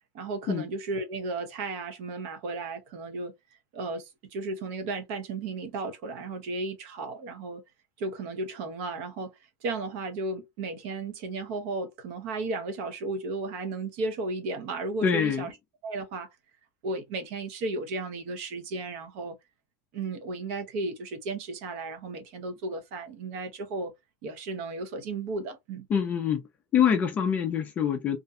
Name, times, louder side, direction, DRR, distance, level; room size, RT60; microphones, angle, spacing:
voice 1, 0.1-3.3 3.7-7.6 8.0-9.3 9.6-15.5 15.8-16.3 16.8-19.4 19.9-23.9 24.2-25.9, right 3 dB, 50° right, 0.6 m, -34 dB
voice 2, 15.0-15.5 25.9-26.4 26.7-28.2, left 8 dB, 20° left, 0.3 m, -25 dB
2.4 x 2.1 x 2.6 m
supercardioid pair, 180°, 9 cm